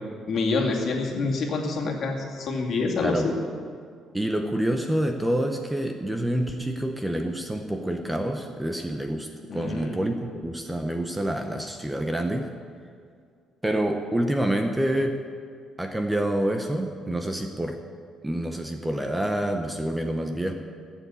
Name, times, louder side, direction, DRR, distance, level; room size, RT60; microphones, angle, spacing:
voice 1, 0.3-3.3 9.5-10.0, left 3 dB, 50° left, 0 dB, 2.2 m, -27 dB
voice 2, 4.1-12.5 13.6-15.2 15.8-17.8 18.2-20.5, right 1 dB, 5° right, 5 dB, 0.7 m, -27 dB
15.0 x 7.3 x 8.4 m, 2.2 s
cardioid pair, 150°, 0 cm